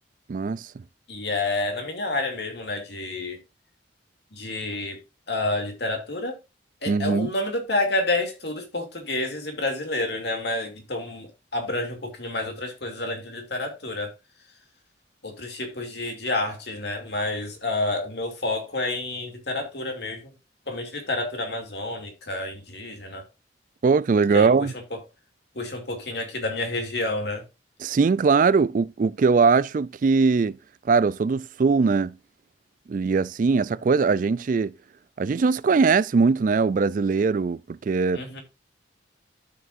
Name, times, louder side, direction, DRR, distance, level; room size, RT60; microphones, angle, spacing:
voice 1, 0.3-0.7 6.9-7.3 23.8-24.7 27.8-30.6 30.8-32.2 32.9-34.7 35.2-38.2, right 4 dB, 45° right, 0.3 m, -21 dB
voice 2, 1.1-3.4 4.3-5.0 5.3-6.4 6.8-14.1 15.2-20.3 20.7-23.2 24.3-24.5 25.5-27.4 38.1-38.4, left 2 dB, 65° left, 2.7 m, -29 dB
12.5 x 6.1 x 2.6 m
head